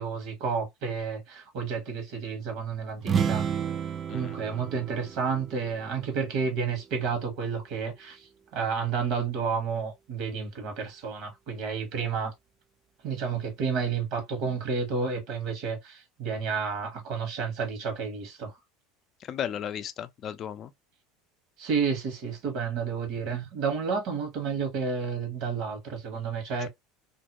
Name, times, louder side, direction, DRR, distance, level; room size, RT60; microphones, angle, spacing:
voice 1, 0.0-3.5 4.1-12.3 13.0-18.6 21.6-26.7, right 5 dB, 65° right, 1.1 m, -31 dB
sound 1, 3.0-6.7, right 7 dB, 30° right, 0.3 m, -31 dB
voice 2, 19.2-20.7, left 9 dB, 45° left, 0.4 m, -35 dB
2.5 x 2.1 x 2.8 m
hypercardioid pair, 95°, 0 cm